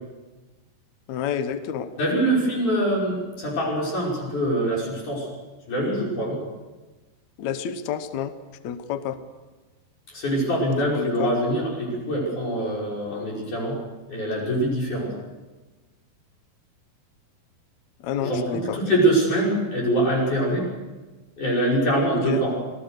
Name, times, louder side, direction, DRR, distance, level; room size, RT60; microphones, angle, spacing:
voice 1, 1.1-1.9 7.4-8.3 8.6-9.2 10.9-11.3 18.0-18.8 22.1-22.4, left 8 dB, 80° left, 10 dB, 1.6 m, -29 dB
voice 2, 2.0-5.3 5.7-6.4 10.1-13.8 14.1-15.1 18.2-18.4 18.7-20.7 21.4-22.5, right 1 dB, 50° left, -3 dB, 7.1 m, -24 dB
25.5 x 18.0 x 6.6 m, 1.2 s
omnidirectional pair, 4.7 m